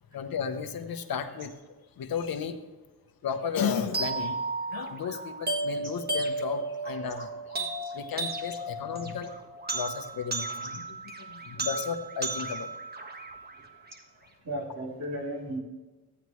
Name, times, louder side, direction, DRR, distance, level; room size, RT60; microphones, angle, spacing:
voice 1, 0.1-1.5 2.0-2.6 3.2-4.4 4.7-7.3 7.6-9.3 9.7-10.7 11.3-12.7, left 6 dB, 70° left, 7 dB, 0.9 m, -33 dB
sound 1, 3.9-14.0, right 3 dB, 25° right, 1.3 m, -34 dB
voice 2, 11.2-11.6 12.5-12.6 13.4-15.6, right 1 dB, 40° right, -3 dB, 3.4 m, -38 dB
14.0 x 9.4 x 3.1 m, 1.2 s
wide cardioid pair, 120°, 37 cm